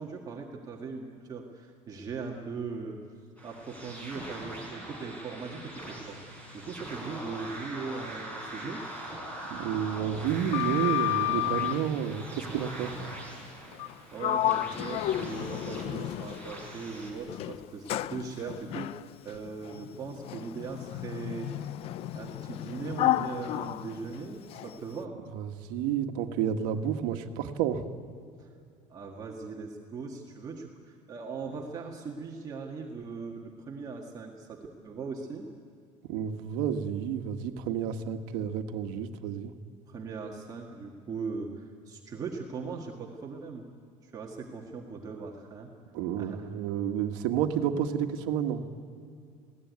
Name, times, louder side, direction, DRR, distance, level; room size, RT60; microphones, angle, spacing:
voice 1, 0.0-3.0 3.4-6.2 6.5-8.8 14.1-21.5 22.1-25.2 28.4-28.5 28.9-35.5 39.9-43.7 44.0-45.7 46.2-46.5, right 4 dB, 30° right, 0 dB, 1.7 m, -39 dB
sound 1, 3.4-17.1, right 1 dB, 10° left, 5.0 m, -42 dB
voice 2, 9.5-12.9 25.3-27.8 36.1-39.5 45.9-48.6, right 9 dB, 85° right, 6 dB, 1.5 m, -30 dB
Sliding door, 10.3-11.9 13.7-13.9 14.2-16.7 17.3-24.8, left 14 dB, 50° left, 0.5 m, -32 dB
21.5 x 17.0 x 9.5 m, 2.4 s
cardioid pair, 165°, 13 cm